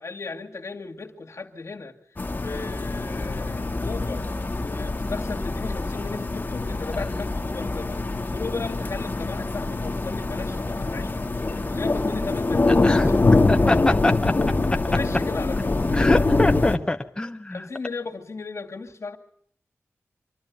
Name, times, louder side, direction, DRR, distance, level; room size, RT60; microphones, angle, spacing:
voice 1, 0.0-4.3 4.6-8.0 8.3-13.4 14.9-16.4 17.5-19.2, left 4 dB, 70° left, 2 dB, 2.3 m, -36 dB
sound 1, 2.2-16.8, left 2 dB, 40° left, 1.8 m, -24 dB
voice 2, 12.7-13.2 13.5-14.3 15.9-17.6, left 2 dB, 15° left, 5 dB, 0.9 m, -25 dB
26.5 x 12.0 x 9.5 m, 0.67 s
wide cardioid pair, 65°, 5 cm